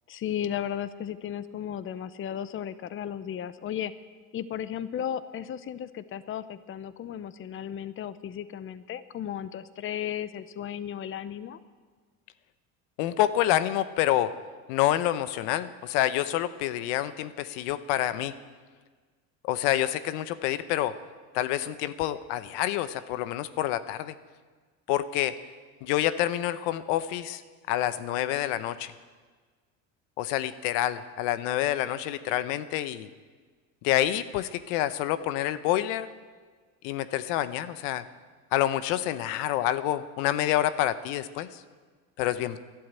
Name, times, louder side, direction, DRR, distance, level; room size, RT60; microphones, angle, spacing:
voice 1, 0.1-3.9 4.3-11.6, left 10 dB, 30° left, 15 dB, 0.7 m, -35 dB
voice 2, 13.0-14.3 14.7-18.4 19.4-20.9 21.3-24.1 24.9-25.3 25.8-27.4 27.7-28.9 30.2-33.1 33.8-36.1 36.8-38.0 38.5-41.6 42.2-42.6, left 13 dB, 75° left, 14 dB, 0.9 m, -27 dB
12.5 x 12.0 x 9.0 m, 1.5 s
supercardioid pair, 100°, 39 cm